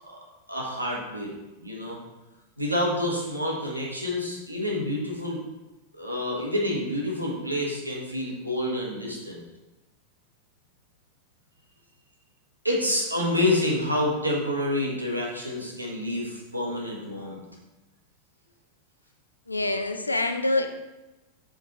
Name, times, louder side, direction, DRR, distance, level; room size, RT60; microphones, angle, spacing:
voice 1, 0.5-1.3 1.6-2.0 2.6-5.4 5.9-9.4 12.6-17.4, left 1 dB, 85° right, -2 dB, 1.2 m, -28 dB
voice 2, 19.5-20.7, left 2 dB, 80° left, 6 dB, 0.5 m, -25 dB
5.0 x 4.6 x 4.1 m, 1.0 s
figure-of-eight pair, 90°, 0 cm